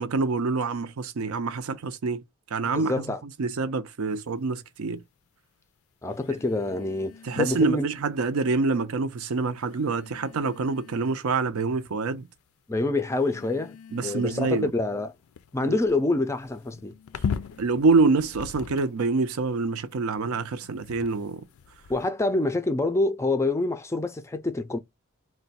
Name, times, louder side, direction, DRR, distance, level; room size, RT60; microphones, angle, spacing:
voice 1, 0.0-2.2 2.5-3.0 3.4-5.0 7.2-12.3 13.9-14.7 15.6-15.8 17.6-21.4, right 4 dB, 90° right, 0.5 m, -26 dB
voice 2, 2.8-3.2 6.0-7.9 12.7-13.8 14.0-15.1 15.5-16.9 21.9-24.8, left 2 dB, 15° left, 0.3 m, -26 dB
sound 1, 4.1-4.3 6.1-7.9 8.8-8.9 9.6-11.3 11.9-12.4 13.1-19.1 19.9-22.1, left 6 dB, 90° left, 0.4 m, -40 dB
2.5 x 2.2 x 3.9 m
head